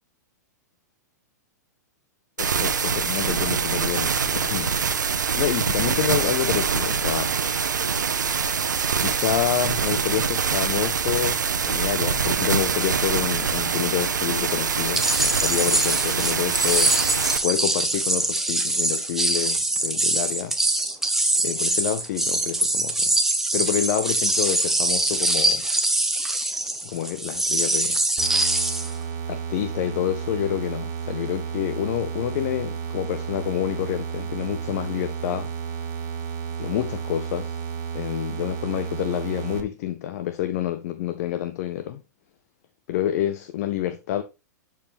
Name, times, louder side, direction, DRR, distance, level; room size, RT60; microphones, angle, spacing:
voice 1, 2.4-5.0 5.3-7.3 9.0-17.2 17.4-20.6 21.4-23.1 23.5-25.7 26.8-28.0 29.3-35.5 36.6-37.6 37.9-42.0 42.9-44.2, left 12 dB, 55° left, 0.7 m, -28 dB
sound 1, 2.4-17.4, right 6 dB, 80° right, 1.0 m, -24 dB
sound 2, 15.0-28.9, right 2 dB, 5° right, 1.2 m, -23 dB
sound 3, 28.2-39.6, right 7 dB, 40° right, 1.9 m, -32 dB
11.5 x 4.7 x 3.5 m
hypercardioid pair, 110°, 10 cm